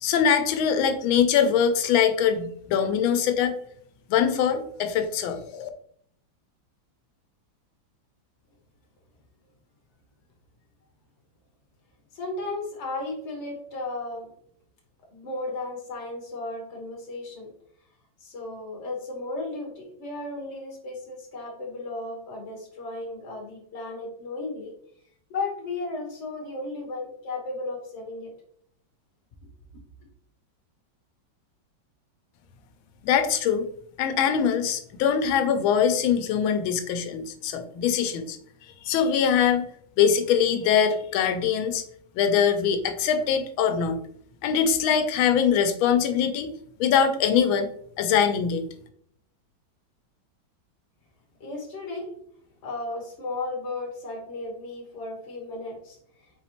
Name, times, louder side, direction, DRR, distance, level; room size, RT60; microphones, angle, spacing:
voice 1, 0.0-3.5 4.1-5.7 33.0-33.7 34.0-38.4 38.8-39.7 40.0-41.8 42.2-44.0 44.4-46.5 46.8-47.7 48.0-48.6, left 7 dB, 90° left, 7 dB, 1.4 m, -23 dB
voice 2, 12.1-14.3 15.1-17.5 18.2-24.7 25.3-28.3 51.4-52.1 52.6-56.0, left 2 dB, 40° left, 0 dB, 1.3 m, -34 dB
4.3 x 4.1 x 2.9 m, 0.65 s
omnidirectional pair, 2.2 m